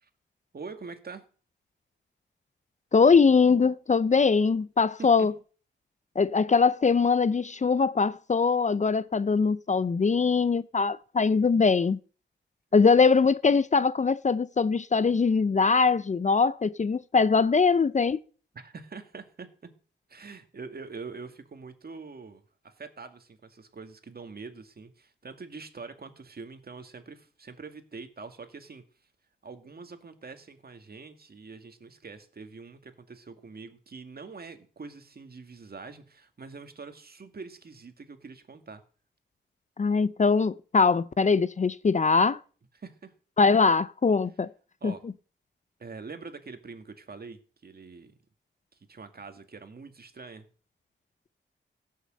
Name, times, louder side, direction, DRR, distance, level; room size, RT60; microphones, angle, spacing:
voice 1, 0.5-1.3 5.0-5.3 18.5-19.7 20.1-28.8 29.4-38.8 42.7-43.1 44.8-45.0 45.8-48.1 48.9-50.5, right 4 dB, 50° right, 2.1 m, -44 dB
voice 2, 2.9-5.3 6.2-12.0 12.7-18.2 39.8-42.4 43.4-44.5 44.8-44.9, left 5 dB, 35° left, 0.5 m, -22 dB
17.0 x 6.6 x 7.7 m
wide cardioid pair, 85°, 20 cm